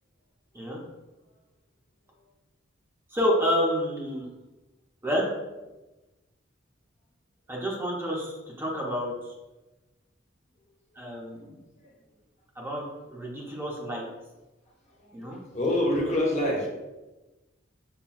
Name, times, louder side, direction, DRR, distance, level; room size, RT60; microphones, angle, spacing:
voice 1, 3.1-4.3 5.0-5.3 7.5-9.1 11.0-11.6 12.6-14.1 15.1-15.4, equal, 10° right, -3 dB, 0.6 m, -29 dB
voice 2, 11.1-11.5 11.8-11.9 14.9-16.7, left 1 dB, 35° left, -2 dB, 0.8 m, -28 dB
5.6 x 2.2 x 2.3 m, 1.1 s
head